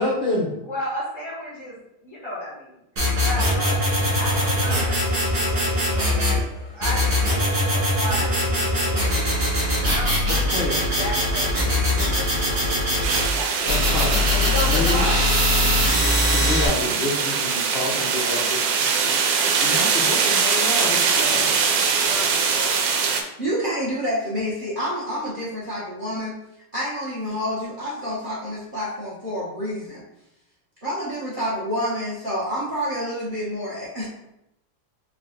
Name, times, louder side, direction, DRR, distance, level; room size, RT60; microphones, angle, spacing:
voice 1, 0.0-0.6 10.3-11.2 13.6-15.1 15.5-19.2 19.5-21.6, left 2 dB, 70° left, -4 dB, 0.5 m, -29 dB
voice 2, 0.7-1.8 2.0-2.8 3.2-7.2 7.6-9.5 9.8-13.7 14.3-15.2 22.0-22.8, equal, 20° left, -7 dB, 0.8 m, -34 dB
sound 1, 3.0-6.4 6.8-13.3 13.7-16.7, left 1 dB, 75° right, 2.5 m, -21 dB
sound 2, 13.0-23.2, right 5 dB, 90° right, 1.3 m, -22 dB
voice 3, 23.4-26.4 26.7-30.0 30.8-34.1, equal, 40° right, -6 dB, 0.8 m, -28 dB
4.8 x 2.3 x 3.7 m, 0.85 s
omnidirectional pair, 2.0 m